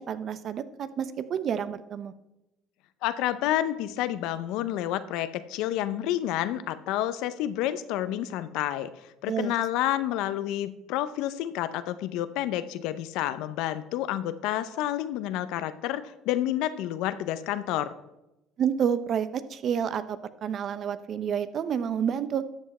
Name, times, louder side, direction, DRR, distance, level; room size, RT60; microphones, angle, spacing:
voice 1, 0.0-2.1 9.3-9.5 18.6-22.4, right 8 dB, 50° right, 13 dB, 0.7 m, -29 dB
voice 2, 3.0-8.9 9.2-17.9, left 13 dB, 75° left, 13 dB, 0.7 m, -29 dB
12.5 x 7.4 x 4.2 m, 0.94 s
supercardioid pair, 85°, 0 cm